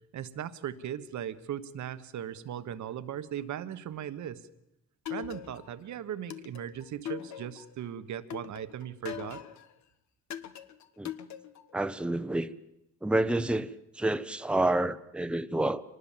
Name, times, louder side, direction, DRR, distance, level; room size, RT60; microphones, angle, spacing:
voice 1, 0.1-4.4 5.1-9.4, right 10 dB, 70° right, 1.4 m, -38 dB
sound 1, 5.1-5.8 6.3-7.8 8.3-9.7 10.3-11.7, left 10 dB, 70° left, 1.4 m, -41 dB
voice 2, 11.7-12.5 13.0-15.8, right 1 dB, 5° right, 0.9 m, -29 dB
25.0 x 19.5 x 7.5 m
cardioid pair, 90°, 30 cm